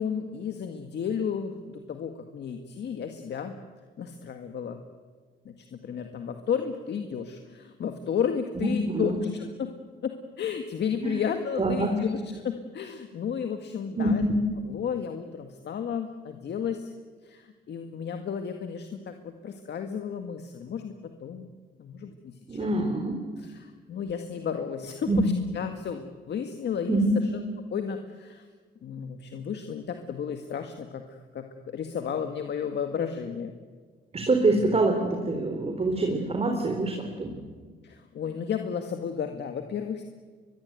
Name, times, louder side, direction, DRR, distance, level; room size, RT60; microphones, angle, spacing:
voice 1, 0.0-3.6 4.0-4.8 5.5-9.7 10.0-14.2 14.6-16.9 17.2-21.5 21.8-22.8 23.4-27.0 27.7-28.5 28.8-33.5 37.8-40.0, left 7 dB, 60° left, 6 dB, 1.9 m, -33 dB
voice 2, 8.6-9.2 11.0-11.2 11.6-12.0 14.0-14.4 22.5-23.2 25.1-25.3 26.9-27.1 34.1-37.3, right 2 dB, 30° right, 3 dB, 3.8 m, -25 dB
23.0 x 22.0 x 9.3 m, 1.5 s
cardioid pair, 90°, 20 cm